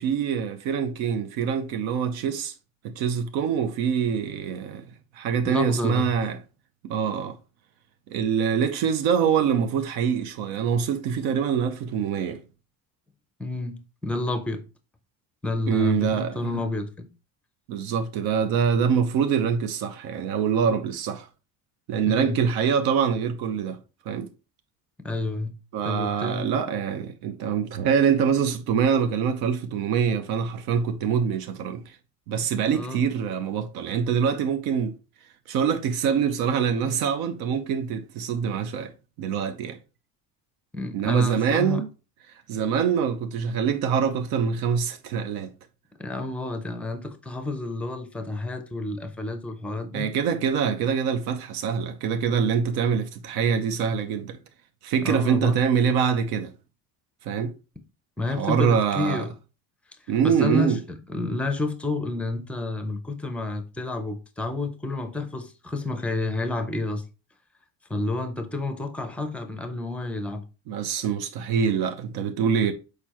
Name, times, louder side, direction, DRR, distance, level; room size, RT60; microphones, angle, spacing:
voice 1, 0.0-2.5 2.8-4.9 5.1-6.4 6.8-7.4 8.1-12.4 15.7-16.6 17.7-21.3 21.9-23.8 24.1-24.3 25.7-32.0 32.3-34.9 35.5-38.9 39.2-39.8 40.9-41.9 42.5-45.5 49.9-54.4 54.8-56.5 57.2-57.5 58.4-59.3 60.1-60.8 70.7-72.7, right 7 dB, 75° right, 0.8 m, -24 dB
voice 2, 5.5-6.1 13.4-14.6 15.4-17.1 22.1-22.4 25.0-25.6 25.8-26.5 32.7-33.0 40.7-41.8 46.0-50.1 55.0-55.6 58.2-59.3 60.2-67.0 67.9-70.4, left 2 dB, 5° left, 0.5 m, -30 dB
6.7 x 4.8 x 2.9 m
cardioid pair, 180°, 37 cm